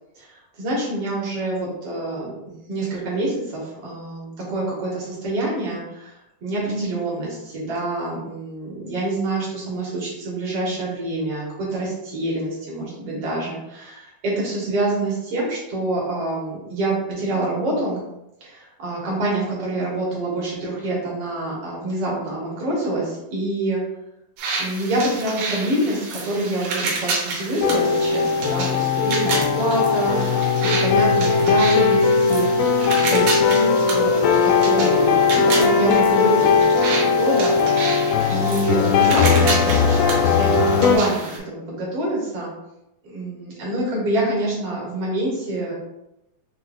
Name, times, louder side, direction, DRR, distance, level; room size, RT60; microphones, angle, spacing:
voice 1, 0.2-18.0 18.4-23.8 24.6-37.9 38.3-42.5 43.0-45.7, right 2 dB, 50° right, -5 dB, 2.1 m, -26 dB
sound 1, 24.4-41.4, right 3 dB, 70° right, 2.7 m, -30 dB
sound 2, 27.6-41.0, left 5 dB, 90° left, 2.5 m, -18 dB
6.4 x 3.1 x 2.5 m, 0.87 s
omnidirectional pair, 4.4 m